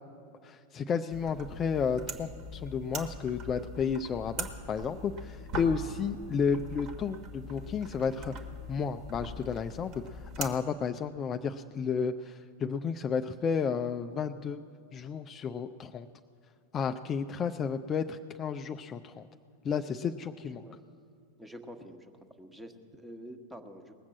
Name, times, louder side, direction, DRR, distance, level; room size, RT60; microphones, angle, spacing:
voice 1, 0.4-8.3 8.7-14.6 14.9-16.1 16.7-19.3 19.6-20.7, left 6 dB, 25° left, 7 dB, 0.4 m, -32 dB
sound 1, 1.1-10.5, right 1 dB, 40° right, 1.4 m, -42 dB
voice 2, 20.4-20.7 21.4-22.1 22.4-23.9, equal, 5° right, 6 dB, 1.1 m, -47 dB
19.5 x 7.3 x 7.5 m, 2.4 s
figure-of-eight pair, 90°, 0 cm